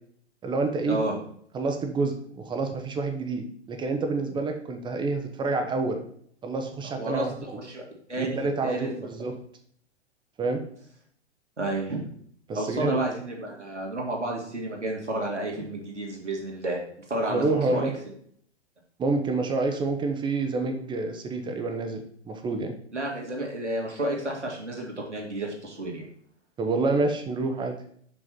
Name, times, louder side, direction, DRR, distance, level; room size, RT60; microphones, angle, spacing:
voice 1, 0.4-1.0 1.5-6.0 6.4-7.3 8.2-9.3 10.4-10.6 12.5-13.0 17.3-17.9 19.0-22.7 26.6-27.8, right 3 dB, 15° right, 5 dB, 0.7 m, -28 dB
voice 2, 6.9-7.3 7.5-7.8 8.1-8.9 11.6-12.0 12.6-16.8 17.1-17.9 22.9-26.1, right 1 dB, 85° right, -1 dB, 2.0 m, -31 dB
5.9 x 5.3 x 4.2 m, 0.62 s
figure-of-eight pair, 105°, 34 cm